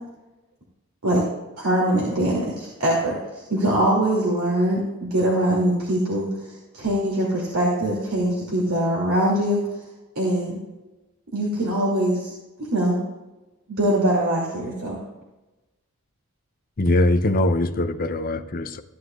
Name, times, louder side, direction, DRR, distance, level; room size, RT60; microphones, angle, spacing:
voice 1, 1.6-9.6 10.2-10.6 11.3-12.3 12.7-13.0 13.7-15.0, right 1 dB, 75° right, -5 dB, 2.6 m, -22 dB
voice 2, 16.8-18.8, left 2 dB, 40° left, 9 dB, 0.6 m, -22 dB
15.0 x 9.8 x 2.4 m, 1.1 s
head